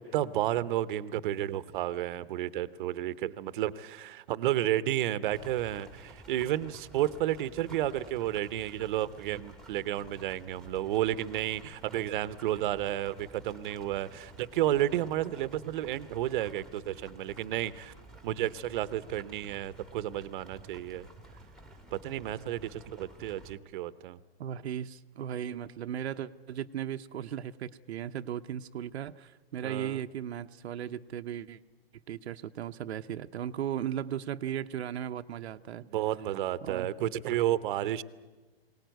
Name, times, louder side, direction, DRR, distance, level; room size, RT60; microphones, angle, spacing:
voice 1, 0.0-17.9 18.2-21.1 21.9-24.2 29.6-30.0 35.8-38.0, right 12 dB, 50° right, 16 dB, 0.9 m, -32 dB
sound 1, 5.3-23.6, right 2 dB, ahead, 1.5 m, -52 dB
voice 2, 24.4-31.6 32.1-35.8 36.6-36.9, right 10 dB, 80° right, 8 dB, 0.8 m, -36 dB
21.0 x 18.5 x 9.2 m, 1.2 s
hypercardioid pair, 150°, 32 cm